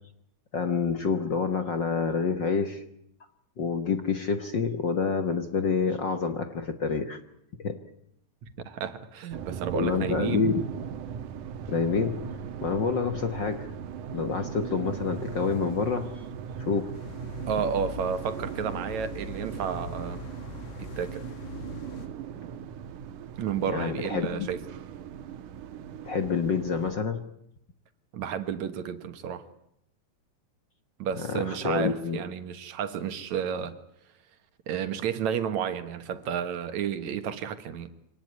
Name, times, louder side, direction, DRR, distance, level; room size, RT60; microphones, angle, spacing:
voice 1, 0.5-2.8 3.6-7.2 7.6-7.8 9.7-10.7 11.7-12.2 12.6-13.7 14.1-16.1 16.6-16.9 23.7-24.5 26.0-27.2 31.3-32.2, left 5 dB, 50° left, 1.5 m, -27 dB
voice 2, 8.6-10.5 17.5-20.2 20.8-21.2 23.4-24.6 28.1-29.5 31.0-33.7 34.7-37.9, right 8 dB, 70° right, 2.7 m, -31 dB
sound 1, 9.3-26.9, right 8 dB, 90° right, 2.7 m, -38 dB
sound 2, 16.9-22.1, left 5 dB, 75° left, 3.5 m, -42 dB
25.0 x 19.0 x 9.6 m
omnidirectional pair, 3.5 m